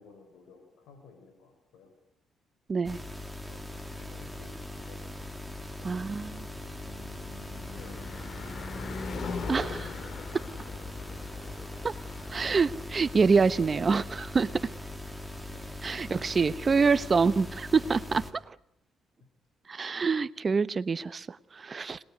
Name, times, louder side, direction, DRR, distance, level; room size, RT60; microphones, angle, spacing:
voice 1, 0.0-1.9 3.5-6.8 7.5-8.8 14.3-14.5 15.5-15.7 16.1-16.3, left 4 dB, 85° left, 7.0 m, -55 dB
sound 1, 2.8-18.3, left 1 dB, 5° left, 3.7 m, -41 dB
Car passing by / Truck / Engine, 5.2-15.4, left 4 dB, 55° left, 3.3 m, -42 dB
voice 2, 5.8-6.4 9.5-9.9 10.3-10.4 11.8-11.9 12.3-14.5 15.8-18.4 19.7-22.0, right 5 dB, 35° right, 1.1 m, -26 dB
26.5 x 20.5 x 9.5 m
cardioid pair, 90°, 0 cm